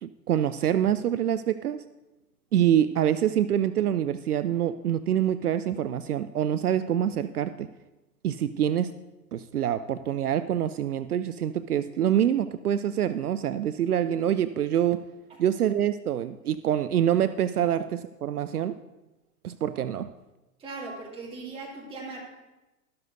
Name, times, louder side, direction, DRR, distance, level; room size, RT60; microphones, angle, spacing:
voice 1, 0.0-1.8 2.5-7.7 8.2-8.9 9.3-15.0 15.4-18.7 19.4-20.1, right 10 dB, 70° right, 13 dB, 0.5 m, -26 dB
voice 2, 20.6-22.2, right 3 dB, 10° right, -3 dB, 2.3 m, -38 dB
12.5 x 12.0 x 2.6 m, 1.0 s
figure-of-eight pair, 110°, 47 cm